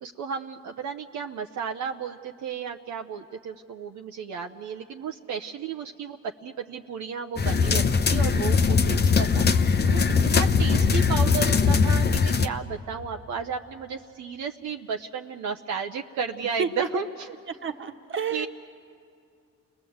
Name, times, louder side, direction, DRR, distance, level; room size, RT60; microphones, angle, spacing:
voice 1, 0.0-17.4 18.3-18.5, right 6 dB, 70° right, 4 dB, 0.8 m, -33 dB
sound 1, 7.4-12.5, left 5 dB, 35° left, 0.7 m, -21 dB
voice 2, 17.6-18.5, right 5 dB, 40° right, 6 dB, 1.4 m, -30 dB
29.0 x 20.0 x 7.9 m, 2.3 s
cardioid pair, 90°, 30 cm